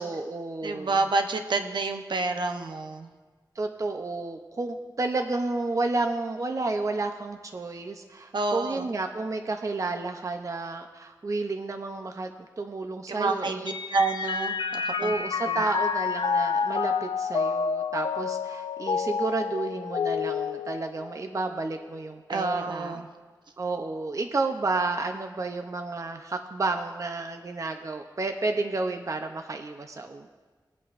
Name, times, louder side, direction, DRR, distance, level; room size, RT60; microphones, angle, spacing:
voice 1, 0.0-1.0 3.6-12.3 12.6-13.7 15.0-23.1 23.6-30.3, right 3 dB, 45° right, 5 dB, 0.6 m, -31 dB
voice 2, 0.6-3.1 8.3-8.9 13.1-15.1 15.5-15.6 22.3-23.1, right 3 dB, 75° right, 6 dB, 0.8 m, -28 dB
Mallet percussion, 13.7-21.4, left 6 dB, 80° left, 0.4 m, -29 dB
21.0 x 8.3 x 2.5 m, 1.4 s
wide cardioid pair, 105°, 8 cm